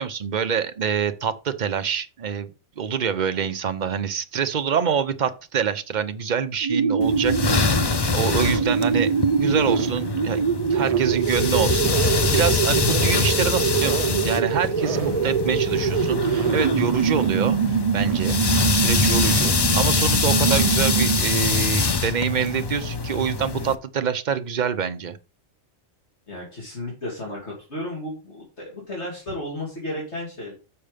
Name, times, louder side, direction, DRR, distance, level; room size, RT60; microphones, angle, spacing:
voice 1, 0.0-2.5 2.8-7.6 8.1-10.4 10.7-18.4 18.7-25.1, right 7 dB, 40° right, 0.8 m, -26 dB
sound 1, 6.6-21.5, right 6 dB, 75° right, 0.3 m, -24 dB
sound 2, 7.0-23.8, left 4 dB, 40° left, 0.3 m, -24 dB
voice 2, 26.3-30.5, left 1 dB, 55° left, 3.2 m, -33 dB
6.9 x 6.6 x 5.1 m
omnidirectional pair, 1.3 m